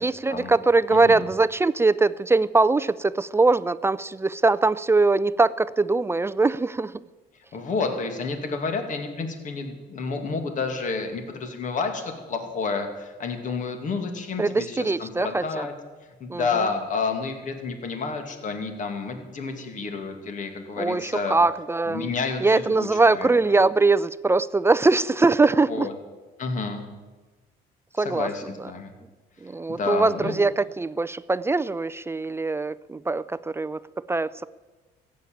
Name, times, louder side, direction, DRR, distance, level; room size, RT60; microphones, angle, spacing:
voice 1, 0.0-6.9 14.4-15.7 16.3-16.7 20.8-22.1 22.4-25.9 28.0-28.3 29.4-33.8 34.1-34.4, right 3 dB, 15° right, 15 dB, 0.4 m, -22 dB
voice 2, 0.9-1.3 7.5-15.7 16.2-21.4 21.9-23.3 25.7-25.9 26.4-26.8 28.0-28.9 29.7-30.3, left 4 dB, 50° left, 6 dB, 2.4 m, -30 dB
14.5 x 8.6 x 8.9 m, 1.2 s
cardioid pair, 110°, 17 cm